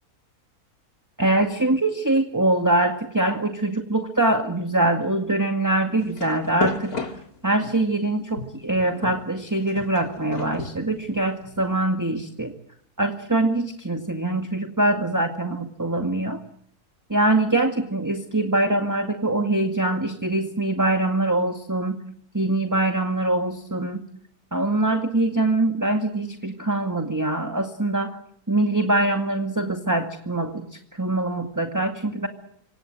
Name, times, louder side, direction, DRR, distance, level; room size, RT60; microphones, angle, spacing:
voice 1, 1.2-6.9 7.4-12.5 13.0-16.4 17.1-22.0 22.3-24.0 24.5-28.2 28.5-32.3, right 2 dB, 10° right, 5 dB, 2.0 m, -23 dB
sound 1, 6.0-7.8 8.4-11.6, left 3 dB, 65° left, 3.5 m, -33 dB
27.5 x 25.5 x 7.7 m, 0.71 s
omnidirectional pair, 1.7 m